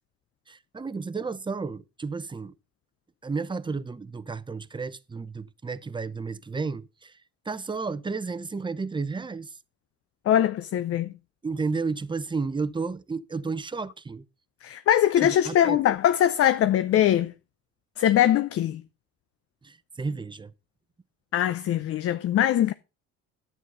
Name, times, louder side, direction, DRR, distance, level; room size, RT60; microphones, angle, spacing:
voice 1, 0.5-2.5 3.2-7.1 7.5-9.5 11.4-14.2 15.2-15.8 19.6-20.5, right 4 dB, 15° right, 0.8 m, -32 dB
voice 2, 10.3-11.1 14.6-17.3 18.0-18.8 21.3-22.7, left 11 dB, 45° left, 0.6 m, -22 dB
10.5 x 8.1 x 5.5 m
supercardioid pair, 90°, 32 cm